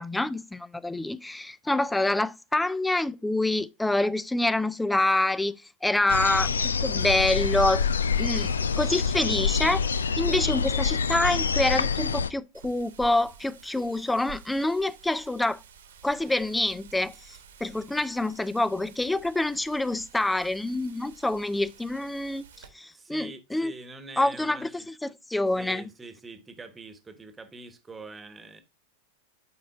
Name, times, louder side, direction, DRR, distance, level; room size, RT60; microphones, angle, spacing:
voice 1, 0.0-5.6 5.8-7.9 8.2-8.5 8.8-9.9 10.2-15.6 16.0-22.4 22.7-23.7 24.2-25.8, left 2 dB, 5° left, 0.4 m, -26 dB
sound 1, 6.1-12.3, left 5 dB, 70° left, 0.4 m, -26 dB
Wind, 12.5-22.7, right 7 dB, 65° right, 1.3 m, -51 dB
voice 2, 22.9-24.9 25.5-28.6, right 3 dB, 15° right, 1.2 m, -44 dB
9.5 x 4.3 x 3.6 m
figure-of-eight pair, 90°, 0 cm